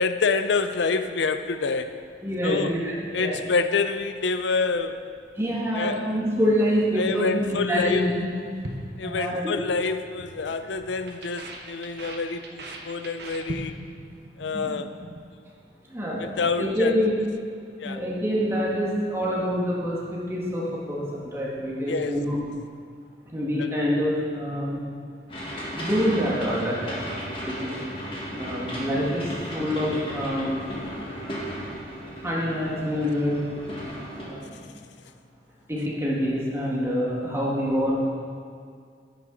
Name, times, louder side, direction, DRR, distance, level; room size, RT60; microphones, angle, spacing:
voice 1, 0.0-2.0 2.4-2.7 3.1-5.0 5.7-6.1 6.9-8.1 9.0-13.8 14.4-14.9 16.2-16.9 17.8-18.0 21.9-22.1 23.6-23.8 34.5-34.6, left 4 dB, 85° left, 10 dB, 0.5 m, -27 dB
voice 2, 2.2-3.4 5.4-8.3 9.0-9.5 14.5-14.7 15.9-17.1 17.8-22.4 23.3-24.8 25.8-27.1 27.5-27.7 28.4-29.2 29.5-30.6 32.2-33.4 34.2-34.6 35.7-38.1, equal, 15° right, -5 dB, 1.8 m, -26 dB
sound 1, 8.6-9.8 10.0-10.4 10.6-14.0 14.3-14.6 14.9-15.2, right 2 dB, 65° right, 1.1 m, -39 dB
sound 2, 25.3-34.3, equal, 30° left, 1.8 m, -35 dB
10.5 x 9.1 x 4.0 m, 2.2 s
head